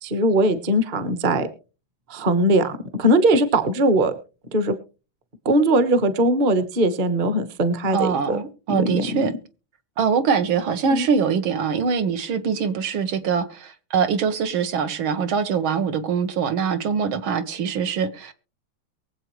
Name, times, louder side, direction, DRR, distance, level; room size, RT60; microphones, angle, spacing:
voice 1, 0.0-1.5 2.1-4.1 4.5-4.8 5.4-8.4 8.7-9.2 10.9-11.1, right 1 dB, 30° right, 11 dB, 0.9 m, -20 dB
voice 2, 7.9-9.3 10.0-18.3, right 6 dB, 75° right, 9 dB, 1.9 m, -23 dB
23.0 x 7.9 x 3.1 m, 0.34 s
omnidirectional pair, 2.3 m